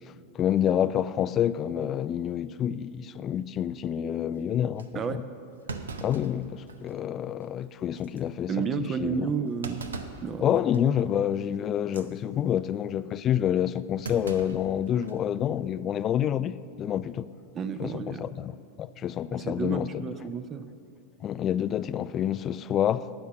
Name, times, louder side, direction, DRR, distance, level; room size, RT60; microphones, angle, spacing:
voice 1, 0.3-5.2 6.0-8.5 8.8-9.3 10.4-17.3 17.8-18.5 18.8-20.0 21.2-23.3, left 10 dB, 30° left, 16 dB, 0.3 m, -28 dB
Thump thud, 3.9-4.2 4.8-4.9 5.7-7.0 7.4-7.5 8.0-8.2 9.6-10.3 10.7-11.0 11.8-12.1 14.0-15.2 15.6-15.7 16.8-17.1, right 4 dB, 70° right, 0.7 m, -39 dB
voice 2, 8.5-9.8 10.2-10.6 17.5-18.3 19.3-20.7, right 6 dB, 25° right, 11 dB, 0.5 m, -31 dB
17.5 x 6.6 x 5.8 m, 2.5 s
figure-of-eight pair, 90°, 0 cm